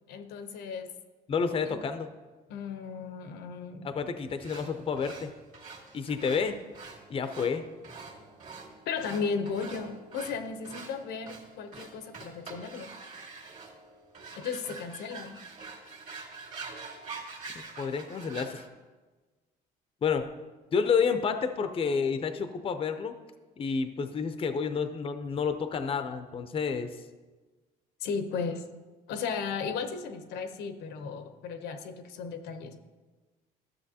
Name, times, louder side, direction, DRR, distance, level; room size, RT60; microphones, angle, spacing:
voice 1, 0.1-0.9 1.7-1.8 2.5-3.9 8.9-12.9 14.3-15.4 28.0-28.6 29.1-32.8, left 5 dB, 80° left, 9 dB, 0.8 m, -35 dB
voice 2, 1.3-2.1 3.8-5.3 5.9-6.6 7.1-7.6 17.5-18.6 20.0-20.3 20.7-23.1 23.6-26.9, left 6 dB, 35° left, 9 dB, 0.5 m, -29 dB
sound 1, 4.4-18.7, right 4 dB, 50° right, 2.0 m, -45 dB
13.0 x 6.9 x 2.8 m, 1.3 s
cardioid pair, 110°, 17 cm